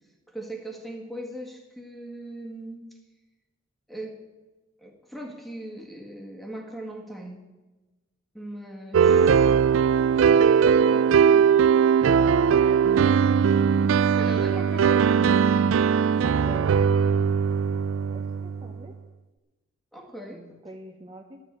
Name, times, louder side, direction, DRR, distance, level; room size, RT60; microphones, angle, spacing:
voice 1, 0.3-3.0 3.9-4.2 4.8-7.4 8.3-9.2 14.2-15.5 19.9-20.6, right 1 dB, ahead, 2 dB, 1.7 m, -39 dB
sound 1, 8.9-18.7, right 7 dB, 75° right, 0.3 m, -20 dB
voice 2, 9.2-9.6 16.4-17.0 18.1-19.0 20.3-21.4, right 2 dB, 25° right, 2 dB, 1.0 m, -44 dB
12.5 x 7.3 x 8.8 m, 1.2 s
head